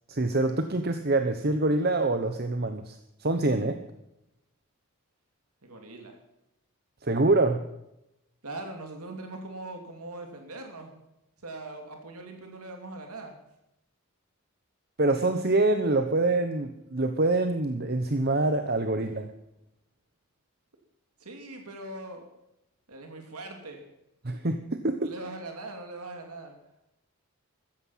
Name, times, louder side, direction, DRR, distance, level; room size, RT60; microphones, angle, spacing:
voice 1, 0.1-3.8 7.0-7.6 15.0-19.3 24.2-25.1, right 2 dB, 45° right, 7 dB, 1.0 m, -25 dB
voice 2, 5.6-6.2 8.4-10.9 11.4-13.4 21.2-22.2 22.9-23.8 25.0-26.6, right 2 dB, 90° right, 3 dB, 2.7 m, -41 dB
15.5 x 14.0 x 5.7 m, 0.85 s
head